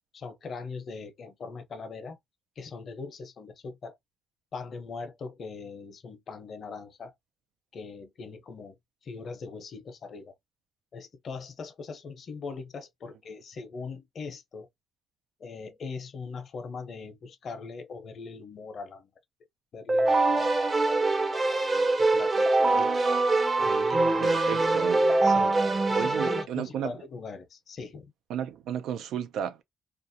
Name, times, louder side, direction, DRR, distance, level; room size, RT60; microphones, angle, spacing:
voice 1, 0.1-2.2 2.6-4.0 4.5-7.1 7.7-8.7 9.0-10.3 10.9-14.7 15.4-19.1 19.7-23.0 23.6-24.7 25.2-25.6 25.9-28.1, left 4 dB, 55° left, 0.7 m, -41 dB
Keyboard (musical), 19.9-26.4, right 2 dB, 30° right, 0.6 m, -24 dB
voice 2, 24.2-25.1 25.9-26.9 28.3-29.6, right 9 dB, 85° right, 0.3 m, -33 dB
2.5 x 2.1 x 2.6 m
cardioid pair, 90°, 0 cm